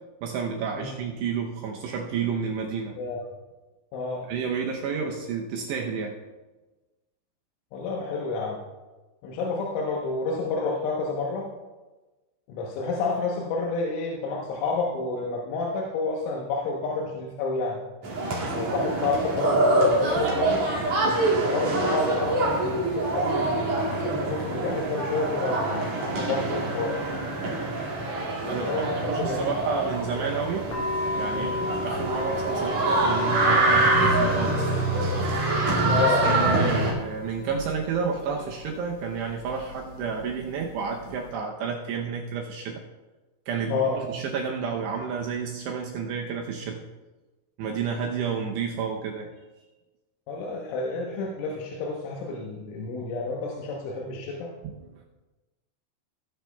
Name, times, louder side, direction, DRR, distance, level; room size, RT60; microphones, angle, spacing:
voice 1, 0.2-3.0 4.3-6.2 28.4-30.7 31.2-34.8 35.8-42.8 43.5-46.8 47.6-49.3 54.6-54.7, right 6 dB, 80° right, 1 dB, 2.6 m, -31 dB
voice 2, 3.9-4.3 7.7-8.6 9.2-11.5 12.5-17.8 18.5-20.7 21.3-27.0 28.4-29.5 31.3-31.6 35.9-36.9 43.7-44.0 50.3-54.5, left 3 dB, 80° left, -2 dB, 3.4 m, -29 dB
sound 1, 18.0-36.9, right 2 dB, 45° right, 2.6 m, -25 dB
sound 2, 30.7-41.3, left 3 dB, 50° left, 2.0 m, -34 dB
18.0 x 9.8 x 2.3 m, 1.2 s
omnidirectional pair, 5.7 m